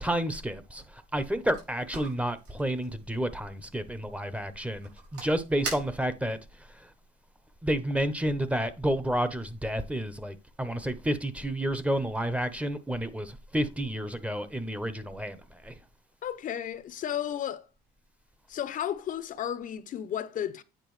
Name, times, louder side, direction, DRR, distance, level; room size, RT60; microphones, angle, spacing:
voice 1, 0.0-6.4 7.6-15.7, right 1 dB, 5° right, 0.8 m, -30 dB
sound 1, 1.2-6.4, right 4 dB, 85° right, 4.9 m, -44 dB
voice 2, 16.2-17.7 18.5-20.6, left 10 dB, 55° left, 0.7 m, -33 dB
9.0 x 4.8 x 3.2 m
cardioid pair, 110°, 17 cm